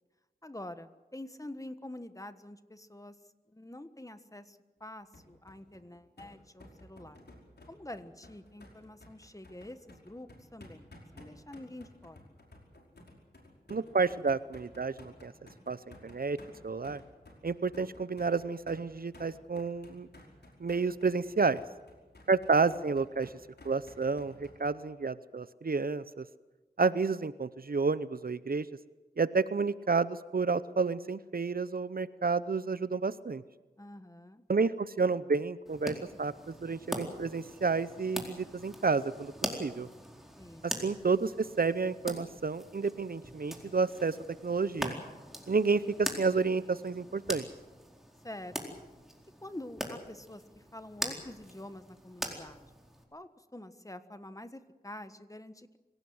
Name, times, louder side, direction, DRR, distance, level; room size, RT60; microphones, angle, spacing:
voice 1, 0.4-3.1 3.5-7.2 7.7-12.3 33.8-34.4 40.4-40.7 48.2-48.8 49.4-52.7 53.1-55.8, left 1 dB, 20° left, 11 dB, 1.4 m, -47 dB
sound 1, 5.1-24.6, left 1 dB, 85° left, 5.0 m, -54 dB
voice 2, 13.7-15.3 15.7-15.8 16.0-16.4 16.6-17.0 17.4-20.1 20.6-21.6 22.3-23.3 23.6-26.2 26.8-28.7 29.2-33.4 34.5-39.3 39.6-39.9 40.6-44.2 44.4-44.9 45.5-47.5, right 4 dB, 65° right, 16 dB, 0.7 m, -30 dB
sound 2, 35.7-53.0, equal, ahead, 4.3 m, -42 dB
25.0 x 17.5 x 7.9 m, 1.2 s
wide cardioid pair, 60°, 16 cm